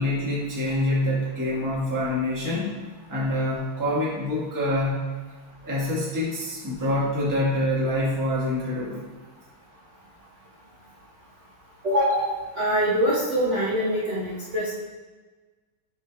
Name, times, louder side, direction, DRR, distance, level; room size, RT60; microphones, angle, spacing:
voice 1, 0.0-2.7 3.1-5.1 5.6-9.0, left 1 dB, 10° right, -6 dB, 0.9 m, -26 dB
voice 2, 11.8-14.7, equal, 45° right, -7 dB, 0.9 m, -24 dB
6.3 x 4.6 x 3.3 m, 1.3 s
omnidirectional pair, 2.4 m